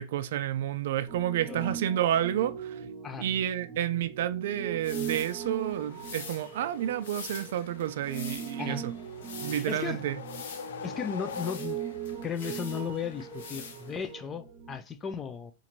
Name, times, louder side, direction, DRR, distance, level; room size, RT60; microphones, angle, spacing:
voice 1, 0.0-2.8 3.2-8.9 9.4-10.2, right 11 dB, 60° right, 0.3 m, -30 dB
Piano, 1.1-14.8, right 8 dB, 15° right, 0.7 m, -40 dB
sound 1, 4.8-14.1, left 5 dB, 65° left, 0.8 m, -46 dB
sound 2, 9.0-12.1, left 7 dB, 90° left, 0.4 m, -41 dB
voice 2, 9.5-10.0 10.8-11.8 12.2-15.5, left 7 dB, 15° left, 0.4 m, -35 dB
4.0 x 2.5 x 2.9 m
supercardioid pair, 165°, 0 cm